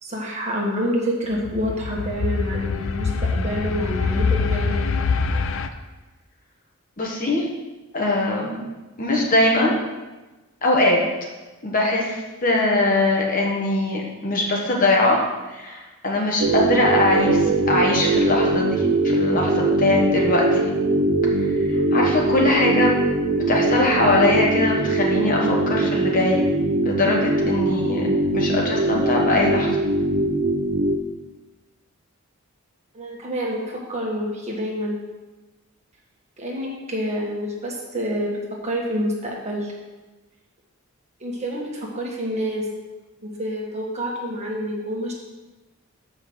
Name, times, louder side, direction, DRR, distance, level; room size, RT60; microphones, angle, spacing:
voice 1, 0.0-4.8 32.9-35.0 36.4-38.3 38.6-39.7 41.2-42.7 43.2-45.1, equal, 30° right, -3 dB, 1.6 m, -27 dB
sound 1, 1.3-5.7, left 4 dB, 60° left, 0.5 m, -24 dB
voice 2, 7.0-7.5 7.9-8.6 9.0-9.7 10.6-11.0 11.6-15.2 15.5-20.7 21.5-23.0 23.5-26.4 26.8-28.1 28.3-29.8, left 2 dB, 40° left, -1 dB, 1.2 m, -21 dB
sound 2, 16.4-31.0, right 2 dB, 55° right, 0.8 m, -21 dB
7.0 x 5.3 x 6.2 m, 1.2 s
head